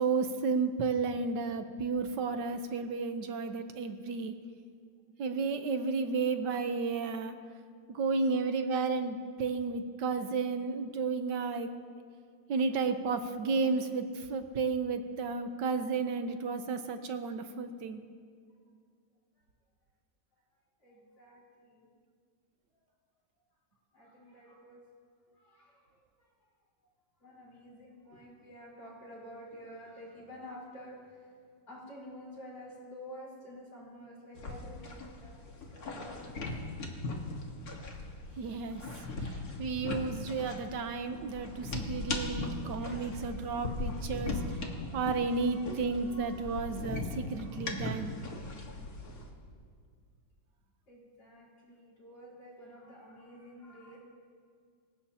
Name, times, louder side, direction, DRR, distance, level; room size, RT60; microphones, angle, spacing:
voice 1, 0.0-4.4 5.2-7.4 7.9-11.7 12.5-18.0 38.4-44.4 44.9-48.2, right 4 dB, 70° right, 8 dB, 1.5 m, -32 dB
voice 2, 20.8-21.9 23.9-24.8 25.3-25.8 26.2-26.3 27.2-31.3 31.7-35.3 35.7-36.4 41.0-41.4 42.0-46.5 47.0-47.6 50.9-54.0, equal, 80° left, -5 dB, 5.1 m, -51 dB
sound 1, 34.3-49.3, left 2 dB, 55° left, 2.0 m, -39 dB
26.0 x 16.0 x 2.9 m, 2.1 s
omnidirectional pair, 2.0 m